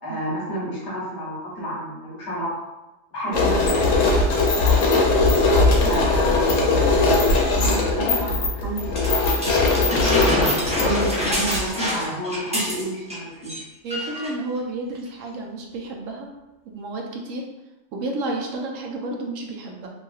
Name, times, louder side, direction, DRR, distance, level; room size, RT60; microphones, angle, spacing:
voice 1, 0.0-2.7 3.1-5.3 5.8-10.3 10.6-13.5, right 1 dB, 65° left, -5 dB, 1.1 m, -31 dB
sound 1, 3.3-11.8, left 3 dB, 90° left, 1.0 m, -20 dB
sound 2, 9.0-13.2 13.4-13.6 13.9-14.3 15.1-15.2, left 1 dB, 10° right, 0.4 m, -26 dB
voice 2, 13.8-16.3 16.6-17.4 17.9-19.9, right 2 dB, 80° right, 0 dB, 1.0 m, -31 dB
3.1 x 2.7 x 2.3 m, 1.0 s
omnidirectional pair, 1.3 m